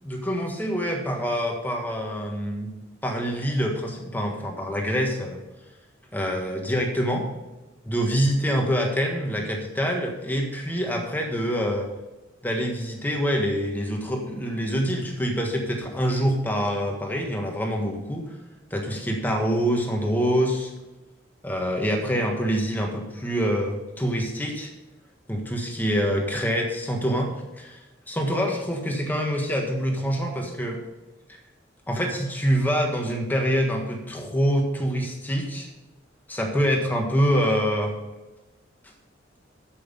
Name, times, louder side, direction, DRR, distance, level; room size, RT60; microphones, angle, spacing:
voice 1, 0.0-2.7 3.0-5.4 6.1-7.3 7.9-11.9 12.4-18.2 18.7-20.7 21.4-24.7 25.3-27.3 27.6-27.8 28.1-30.8 31.9-35.7 36.3-38.0, equal, 10° left, 1 dB, 1.5 m, -25 dB
8.0 x 7.8 x 5.3 m, 1.1 s
head